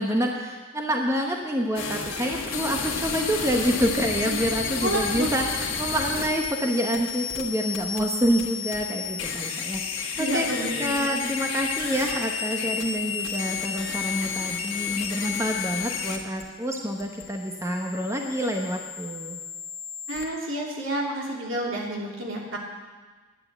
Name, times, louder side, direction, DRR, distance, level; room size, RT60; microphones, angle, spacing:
voice 1, 0.0-19.4, equal, 15° right, 1 dB, 1.0 m, -27 dB
sound 1, 1.7-20.2, left 6 dB, 85° left, 1.6 m, -32 dB
voice 2, 4.8-5.3 10.2-11.2 20.1-22.6, right 1 dB, 75° right, -2 dB, 3.0 m, -29 dB
10.5 x 9.7 x 8.0 m, 1.3 s
head